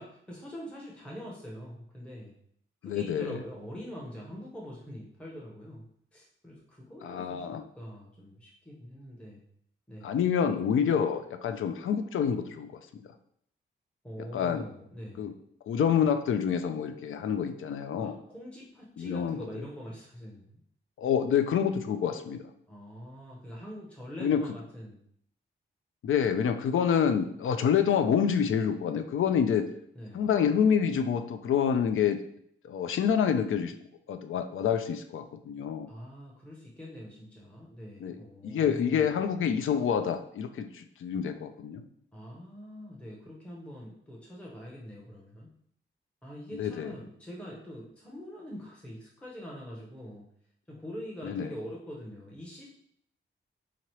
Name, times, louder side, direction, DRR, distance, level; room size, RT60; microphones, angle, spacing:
voice 1, 0.0-2.3 2.8-9.4 9.9-10.2 14.0-15.3 17.9-20.6 22.7-25.0 29.9-30.3 35.9-39.2 42.1-45.5 46.2-50.3 50.7-52.7, equal, 5° left, -3 dB, 0.7 m, -44 dB
voice 2, 2.8-3.4 7.0-7.6 10.0-12.7 12.9-13.0 14.3-14.6 15.2-15.3 15.7-18.1 19.0-19.4 21.0-22.4 24.2-24.4 26.0-29.6 30.1-32.2 32.6-33.8 34.1-35.9 38.0-38.2 38.4-41.8 46.5-46.9 51.2-51.5, left 7 dB, 75° left, 8 dB, 0.4 m, -27 dB
3.8 x 2.9 x 3.0 m, 0.67 s
wide cardioid pair, 95°, 21 cm